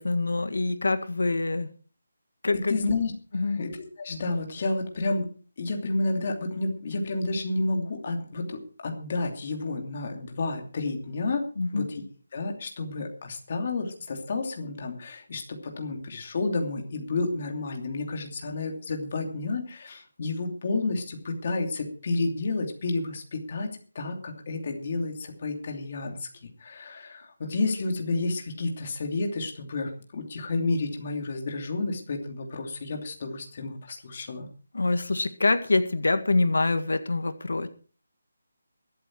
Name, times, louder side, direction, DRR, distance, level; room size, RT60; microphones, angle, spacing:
voice 1, 0.0-1.7 2.4-2.8 3.3-3.6 11.6-11.9 34.7-37.7, left 3 dB, 90° left, 10 dB, 1.8 m, -25 dB
voice 2, 2.7-5.3 5.6-11.5 11.7-12.0 12.3-26.3 26.6-34.5, left 3 dB, 30° left, 3 dB, 2.7 m, -30 dB
23.0 x 8.1 x 4.7 m, 0.40 s
hypercardioid pair, 180°, 0 cm